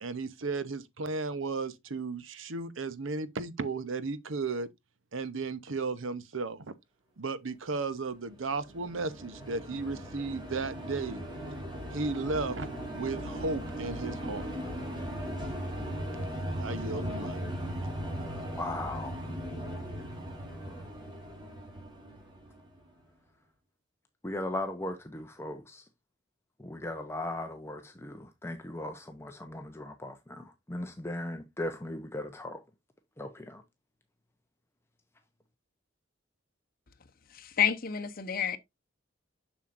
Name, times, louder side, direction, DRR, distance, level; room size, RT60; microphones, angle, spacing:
voice 1, 0.0-4.7 5.1-6.7 7.2-11.2 11.9-14.5 16.6-17.4, right 3 dB, 85° right, 0.8 m, -34 dB
sound 1, 8.3-22.8, equal, 25° right, 2.4 m, -38 dB
voice 2, 18.5-19.2 20.6-20.8 24.2-25.9 26.6-32.6 33.2-33.6, left 1 dB, 15° left, 0.6 m, -38 dB
voice 3, 37.3-38.6, left 8 dB, 45° left, 0.8 m, -29 dB
7.2 x 6.4 x 2.5 m
head